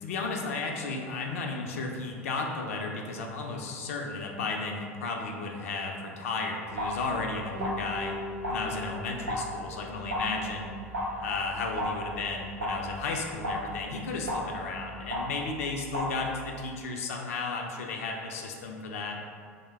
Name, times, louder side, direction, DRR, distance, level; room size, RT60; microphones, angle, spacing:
voice 1, 0.0-8.1 8.5-10.7 11.2-19.3, left 3 dB, 65° left, 1 dB, 0.4 m, -34 dB
sound 1, 6.7-16.7, equal, 85° right, 0.6 m, -36 dB
sound 2, 7.6-10.1, left 2 dB, 5° right, 0.4 m, -40 dB
3.2 x 2.1 x 3.2 m, 2.1 s
figure-of-eight pair, 75°, 8 cm